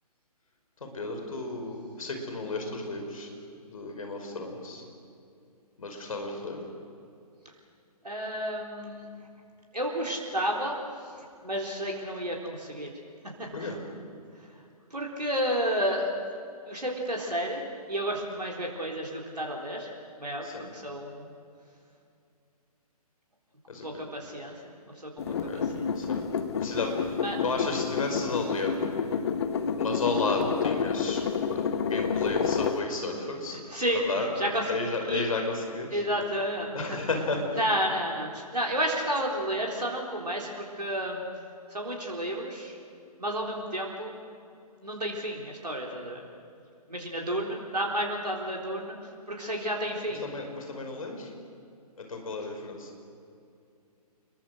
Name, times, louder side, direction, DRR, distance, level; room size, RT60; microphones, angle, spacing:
voice 1, 0.8-3.3 3.6-4.8 5.8-6.6 13.5-13.8 20.4-20.7 23.7-23.9 25.3-25.6 26.0-26.2 26.6-28.8 29.7-31.2 31.5-33.6 33.9-34.3 34.7-36.0 36.7-37.6 50.1-51.3 52.1-52.9, left 3 dB, 60° left, 3 dB, 5.4 m, -33 dB
voice 2, 8.0-9.1 9.7-10.8 11.2-12.9 13.2-13.7 14.9-16.1 16.7-19.9 20.2-21.3 23.8-25.9 27.2-27.4 33.5-34.7 35.0-35.3 35.9-37.0 37.5-41.2 41.7-42.8 43.2-44.1 44.8-46.3 46.9-49.0 49.3-50.3, equal, 85° right, -1 dB, 4.0 m, -31 dB
sound 1, 25.2-32.8, left 6 dB, 40° left, 1.3 m, -29 dB
28.0 x 22.0 x 6.5 m, 2.5 s
figure-of-eight pair, 135°, 20 cm